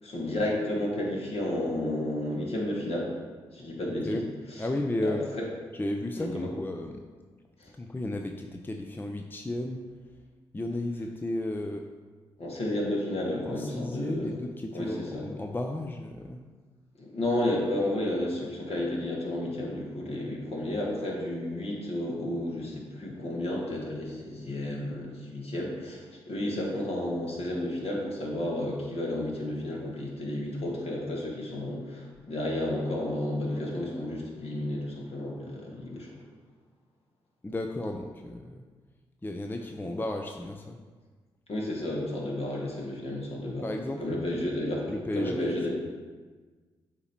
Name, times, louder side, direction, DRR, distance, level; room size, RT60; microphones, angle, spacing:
voice 1, 0.0-3.1 3.5-4.2 5.0-5.5 6.2-6.5 7.6-7.7 12.4-14.3 14.7-15.2 17.0-36.2 39.8-39.9 41.5-43.7 44.0-44.9 45.1-45.7, left 1 dB, 55° left, -2 dB, 1.7 m, -32 dB
voice 2, 4.6-5.2 5.7-7.0 7.7-9.8 10.5-11.9 13.5-16.4 37.4-38.6 39.2-40.8 43.6-44.3 44.9-45.6, left 1 dB, 15° left, 4 dB, 0.5 m, -33 dB
7.9 x 2.9 x 4.4 m, 1.4 s
hypercardioid pair, 40°, 12 cm